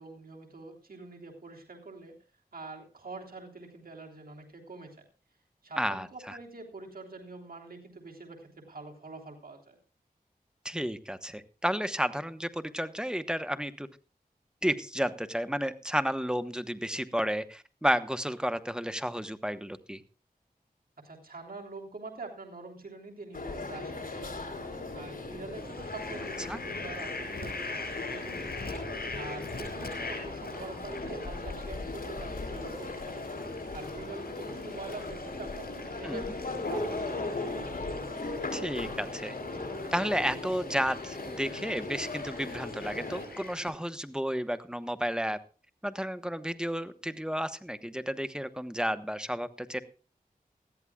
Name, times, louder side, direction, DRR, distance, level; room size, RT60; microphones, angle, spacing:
voice 1, 0.0-2.1 2.5-5.0 5.6-9.8 21.0-24.4 24.9-28.6 29.1-33.2 33.7-37.5, right 3 dB, 75° right, 0 dB, 3.4 m, -45 dB
voice 2, 5.8-6.4 10.6-13.9 14.6-20.0 26.5-26.6 36.0-36.3 38.5-39.3 39.9-45.4 45.8-49.8, equal, 5° right, 11 dB, 1.1 m, -32 dB
sound 1, 23.3-43.3, left 2 dB, 65° left, 3.5 m, -38 dB
Fowl, 25.5-43.7, left 2 dB, 85° left, 5.8 m, -42 dB
19.5 x 14.0 x 2.4 m, 0.36 s
wide cardioid pair, 60°, 15 cm